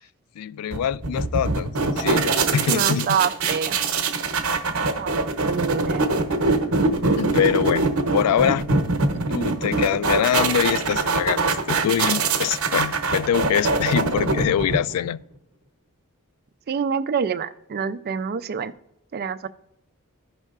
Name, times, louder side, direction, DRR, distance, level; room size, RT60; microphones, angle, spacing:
voice 1, 0.4-3.1 7.2-8.7 9.3-15.2, left 9 dB, 85° left, 0.3 m, -24 dB
sound 1, 0.7-15.1, right 3 dB, 65° right, 0.8 m, -23 dB
voice 2, 2.7-3.8 4.8-6.1 9.2-9.6 16.7-18.7 19.1-19.5, right 6 dB, 45° right, 0.4 m, -27 dB
13.5 x 5.4 x 2.4 m
head